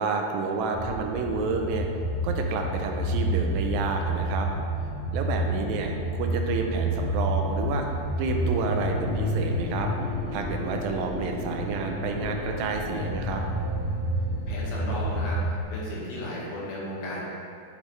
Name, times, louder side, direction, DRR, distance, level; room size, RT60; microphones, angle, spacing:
voice 1, 0.0-1.9 2.2-4.5 5.1-7.9 8.2-9.9 10.3-13.4, right 4 dB, 80° right, 3 dB, 2.3 m, -30 dB
sound 1, 0.7-15.6, right 1 dB, 55° left, 3.0 m, -30 dB
sound 2, 0.8-15.3, right 2 dB, 65° right, 2.6 m, -41 dB
sound 3, 8.5-14.2, left 3 dB, 70° left, 2.4 m, -38 dB
voice 2, 14.5-17.2, left 1 dB, 85° left, -6 dB, 3.3 m, -35 dB
10.5 x 5.1 x 3.1 m, 2.5 s
omnidirectional pair, 4.2 m